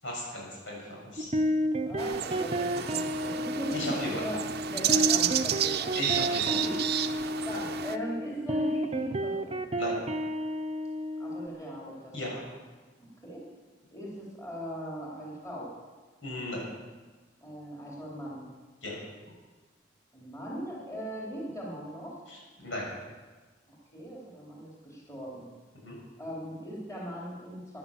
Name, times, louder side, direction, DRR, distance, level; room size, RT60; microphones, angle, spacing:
voice 1, 0.0-1.3 3.7-4.2 5.9-6.5 9.8-10.0 12.1-12.4 16.2-16.6 18.8-19.0 22.3-22.9 25.8-26.0, left 1 dB, 85° left, -3 dB, 6.9 m, -36 dB
sound 1, 1.2-11.5, equal, 30° right, 0.8 m, -31 dB
voice 2, 1.9-4.4 4.7-6.0 6.5-6.8 7.4-9.6 11.2-12.3 13.2-13.4 13.9-15.7 17.4-18.5 20.1-22.2 23.9-25.4 26.2-27.8, equal, 20° left, -5 dB, 4.0 m, -39 dB
sound 2, 2.0-8.0, right 10 dB, 60° right, 0.7 m, -31 dB
14.5 x 11.5 x 7.5 m, 1.3 s
head